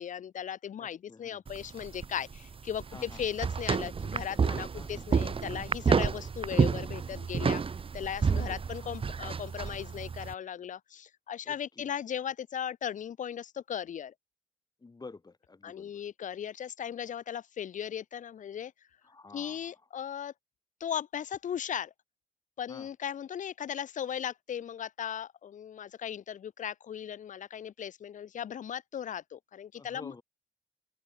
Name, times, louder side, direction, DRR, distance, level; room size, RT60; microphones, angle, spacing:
voice 1, 0.0-7.6 7.9-14.1 15.6-18.7 19.3-20.3 20.8-21.9 22.6-30.1, left 9 dB, 85° left, 0.8 m, -37 dB
voice 2, 0.8-1.4 2.9-3.2 4.7-5.1 8.3-8.6 11.5-11.9 14.8-16.0 19.0-19.7 22.7-22.9 29.7-30.2, left 3 dB, 30° left, 4.5 m, -50 dB
sound 1, 1.5-10.3, right 5 dB, 45° right, 1.0 m, -30 dB
open air
wide cardioid pair, 125°, 13 cm